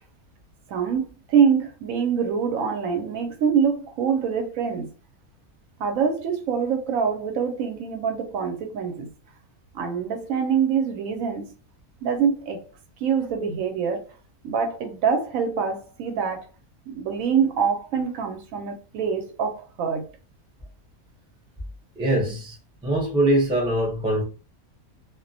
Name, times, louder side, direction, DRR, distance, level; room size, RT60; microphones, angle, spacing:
voice 1, 0.7-4.9 5.8-9.1 9.7-11.5 12.0-12.7 13.0-14.1 14.4-16.5 16.9-20.0, right 6 dB, 70° right, 0.9 m, -25 dB
voice 2, 22.0-22.6 22.8-24.2, right 1 dB, 10° right, 0.3 m, -22 dB
2.4 x 2.1 x 2.6 m
omnidirectional pair, 1.5 m